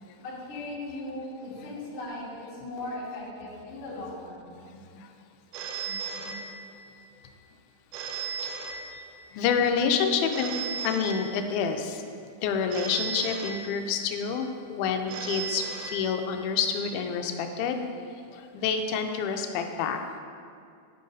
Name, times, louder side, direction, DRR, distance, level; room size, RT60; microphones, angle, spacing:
voice 1, 0.2-4.5 10.0-10.1, left 2 dB, 55° left, -7 dB, 1.8 m, -38 dB
voice 2, 4.7-5.1 5.9-6.0 6.2-6.6 8.4-9.0 9.3-12.0 12.4-17.8 18.3-20.0, left 6 dB, 85° left, 6 dB, 2.4 m, -28 dB
Telephone, 5.5-7.0 7.9-9.4 10.3-11.8 12.7-14.2 15.1-16.6, right 6 dB, 90° right, 2.5 m, -36 dB
9.7 x 5.3 x 3.8 m, 2.4 s
omnidirectional pair, 4.3 m